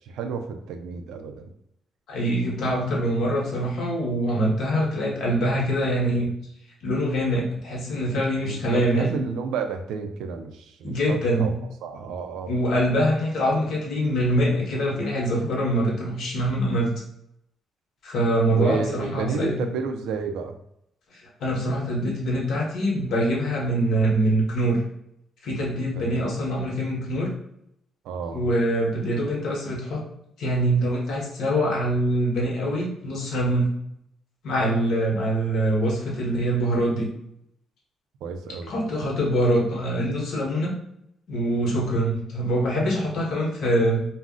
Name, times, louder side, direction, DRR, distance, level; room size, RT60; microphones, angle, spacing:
voice 1, 0.0-1.5 8.4-12.5 18.5-20.6 26.0-26.4 28.0-28.5 38.2-38.7, right 5 dB, 90° right, 6 dB, 0.3 m, -31 dB
voice 2, 2.1-6.3 6.8-9.1 10.8-11.5 12.5-16.9 18.0-19.5 21.4-24.8 25.4-27.3 28.3-30.0 30.4-33.7 34.4-37.1 38.7-40.7 41.3-44.1, right 1 dB, 75° left, -2 dB, 0.9 m, -24 dB
2.4 x 2.0 x 3.6 m, 0.75 s
cardioid pair, 90°, 0 cm